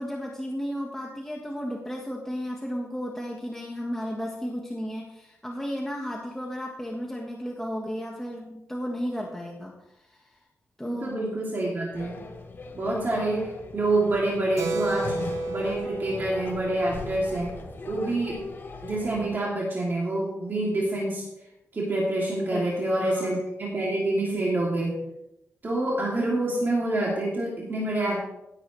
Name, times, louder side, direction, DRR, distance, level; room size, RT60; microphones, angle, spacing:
voice 1, 0.0-9.7 10.1-10.4 10.8-11.0 22.5-23.4, equal, 5° left, -1 dB, 1.4 m, -34 dB
voice 2, 10.8-12.2 12.7-15.2 15.5-17.5 17.9-18.4 18.8-21.2 21.7-24.9 25.6-28.2, right 2 dB, 40° right, -4 dB, 2.8 m, -27 dB
sound 1, 11.9-19.4, left 3 dB, 40° left, 1.3 m, -40 dB
Keyboard (musical), 14.6-18.7, right 2 dB, 75° right, 1.3 m, -34 dB
16.0 x 8.0 x 3.3 m, 0.87 s
cardioid pair, 105°, 5 cm